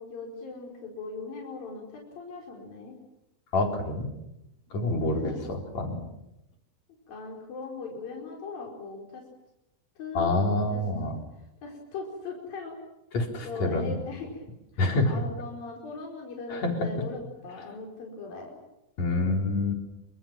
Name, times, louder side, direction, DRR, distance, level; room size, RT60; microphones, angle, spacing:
voice 1, 0.0-2.9 5.1-5.4 7.1-9.2 10.0-11.1 11.6-12.8 13.4-14.4 15.0-18.5, left 4 dB, 75° left, -1 dB, 6.5 m, -39 dB
voice 2, 3.5-4.1 4.7-6.0 10.1-11.2 13.1-14.0 14.8-15.2 16.5-17.1 19.0-19.7, left 2 dB, 50° left, 2 dB, 5.4 m, -27 dB
28.0 x 25.5 x 7.6 m, 0.89 s
omnidirectional pair, 4.1 m